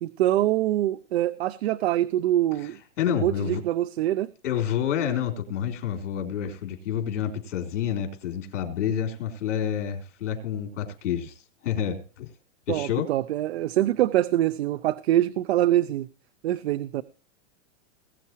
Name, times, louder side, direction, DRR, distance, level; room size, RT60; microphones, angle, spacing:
voice 1, 0.0-2.8 3.1-4.3 12.7-16.1 16.4-17.0, right 13 dB, 60° right, 13 dB, 0.7 m, -24 dB
voice 2, 3.0-3.6 4.4-12.3 12.7-13.1, left 9 dB, 80° left, 4 dB, 3.9 m, -29 dB
20.5 x 8.4 x 3.0 m, 0.39 s
supercardioid pair, 170°, 37 cm